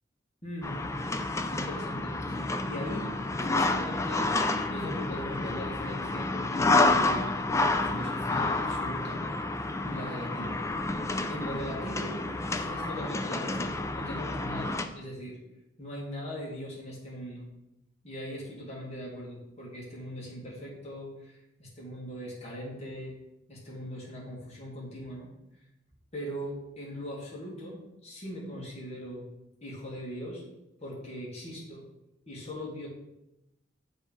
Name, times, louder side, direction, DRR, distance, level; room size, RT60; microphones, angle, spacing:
voice 1, 0.4-0.8 1.5-4.3 4.7-7.5 7.8-9.2 9.8-10.6 11.3-12.2 12.6-15.4 15.8-17.5 18.0-23.1 23.5-25.3 26.1-29.3 29.6-30.4 30.8-31.8 32.3-32.9, equal, 35° left, -4 dB, 1.9 m, -40 dB
sound 1, 0.6-14.8, left 2 dB, 15° left, 0.4 m, -29 dB
7.3 x 3.5 x 5.4 m, 0.90 s
head